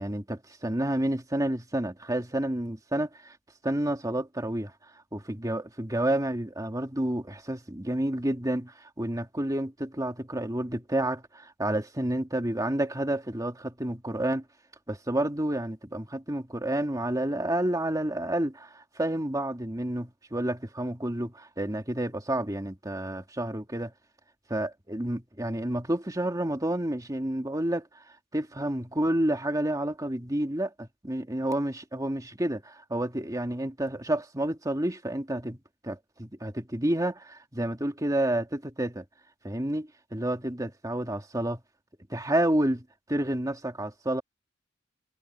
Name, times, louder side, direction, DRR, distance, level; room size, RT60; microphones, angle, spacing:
voice 1, 0.0-3.3 3.6-4.7 5.1-14.4 14.9-23.9 24.5-27.9 28.3-35.6 35.8-39.0 39.4-41.6 42.1-44.2, right 1 dB, 20° right, 2.2 m, -30 dB
head